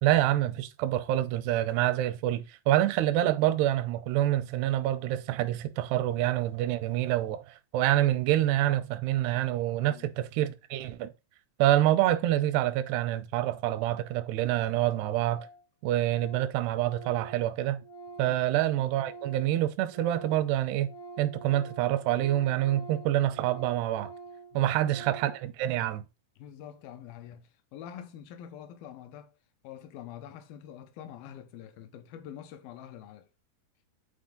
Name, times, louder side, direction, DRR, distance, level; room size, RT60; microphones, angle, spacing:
voice 1, 0.0-11.1 11.6-15.5 15.8-17.8 18.2-20.9 21.2-24.1 24.5-26.0, right 13 dB, 85° right, 2.7 m, -27 dB
Organ, 14.9-15.0 15.3-15.6 15.9-19.5 19.8-25.4, right 3 dB, 60° left, 1.4 m, -47 dB
voice 2, 24.5-25.0 26.4-29.3 29.6-33.3, left 10 dB, 75° left, 2.6 m, -46 dB
9.6 x 4.3 x 3.8 m
omnidirectional pair, 4.6 m